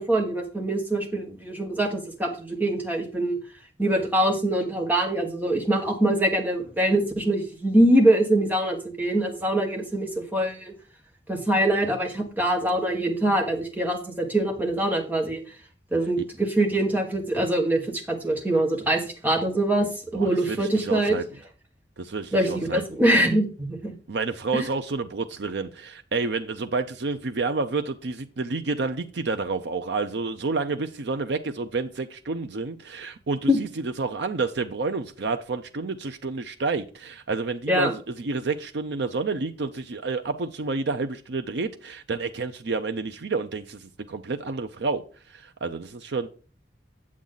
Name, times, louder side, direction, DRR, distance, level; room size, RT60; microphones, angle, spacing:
voice 1, 0.0-3.4 3.8-10.7 11.3-15.4 15.9-21.2 22.3-23.9 24.5-24.7 33.5-33.6 37.7-37.9, right 1 dB, 10° right, 1.7 m, -23 dB
voice 2, 20.1-21.2 22.0-22.8 24.1-33.7 34.0-45.0 45.3-46.3, right 3 dB, 70° right, 0.6 m, -29 dB
8.6 x 7.4 x 3.9 m
head